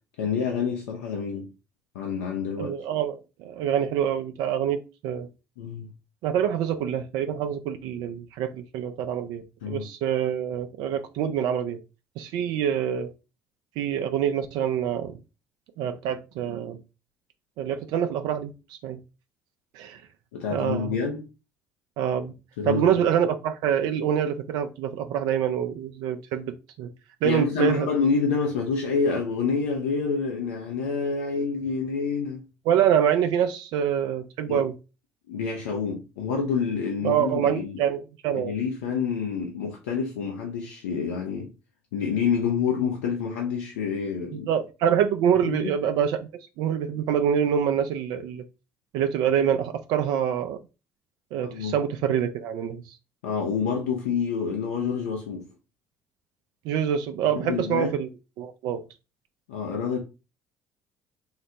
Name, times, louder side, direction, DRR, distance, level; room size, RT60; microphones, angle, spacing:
voice 1, 0.2-1.5 1.9-2.8 5.6-5.9 9.6-9.9 20.3-21.3 22.6-23.0 27.2-32.5 34.5-34.6 35.3-37.8 38.3-41.5 41.9-44.5 45.4-45.7 51.4-51.8 53.2-55.5 57.3-57.9 59.5-60.0, left 6 dB, 80° left, 0.6 m, -28 dB
voice 2, 2.6-5.3 6.2-11.8 12.2-13.1 13.8-15.1 15.8-16.8 17.6-18.5 18.8-19.0 19.7-20.0 20.5-21.0 22.0-22.3 22.7-26.9 27.2-27.9 32.7-34.7 37.0-38.5 44.3-46.3 46.6-48.4 48.9-50.6 51.3-52.9 56.6-58.1 58.4-58.8, right 9 dB, 70° right, 0.4 m, -26 dB
4.0 x 2.1 x 2.8 m
hypercardioid pair, 55°, 7 cm